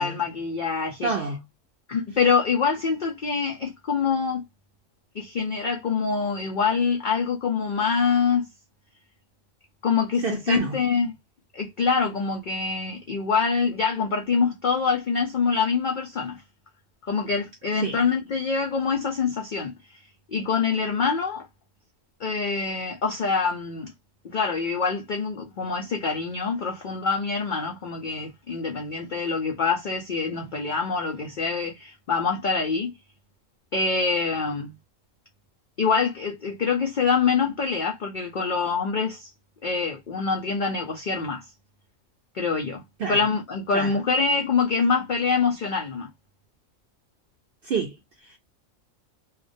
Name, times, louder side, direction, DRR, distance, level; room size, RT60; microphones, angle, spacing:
voice 1, 0.0-1.1 1.9-4.4 5.2-8.4 9.8-11.1 11.5-16.4 17.1-19.7 20.3-21.5 22.2-23.9 24.3-32.9 33.7-34.7 35.8-39.3 39.6-41.4 42.3-42.8 43.1-46.1, left 5 dB, 85° left, 0.4 m, -25 dB
voice 2, 1.0-1.4 10.2-10.8 17.8-18.0 43.0-43.3 43.7-44.0 47.6-48.4, right 4 dB, 70° right, 0.5 m, -29 dB
2.3 x 2.1 x 2.5 m
omnidirectional pair, 1.4 m